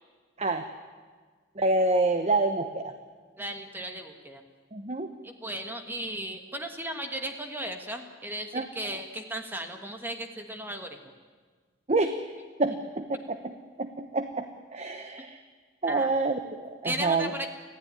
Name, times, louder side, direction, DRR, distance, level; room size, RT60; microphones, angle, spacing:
voice 1, 1.6-2.9 4.7-5.1 8.5-8.7 11.9-12.1 12.6-13.5 13.8-14.5 14.7-15.4 15.8-17.3, right 2 dB, 35° right, 8 dB, 1.0 m, -27 dB
voice 2, 3.4-4.4 5.2-11.1 15.2-15.3 15.9-16.1 16.8-17.5, right 1 dB, 10° right, 5 dB, 1.4 m, -36 dB
25.5 x 15.5 x 9.9 m, 1.5 s
head